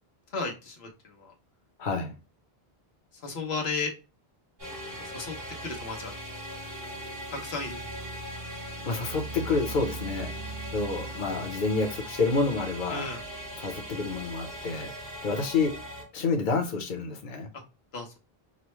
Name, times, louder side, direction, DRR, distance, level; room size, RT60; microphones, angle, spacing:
voice 1, 0.3-1.3 3.1-3.9 5.0-6.1 7.3-7.8 12.9-13.2 17.5-17.6 17.9-18.2, left 4 dB, 90° left, 1.3 m, -34 dB
voice 2, 1.8-2.1 8.8-10.3 10.7-13.1 13.6-14.9 15.2-15.7 16.1-17.5, left 4 dB, 55° left, 1.0 m, -28 dB
sound 1, 4.6-16.0, right 1 dB, 75° right, 2.9 m, -39 dB
5.3 x 2.1 x 3.1 m
omnidirectional pair, 1.0 m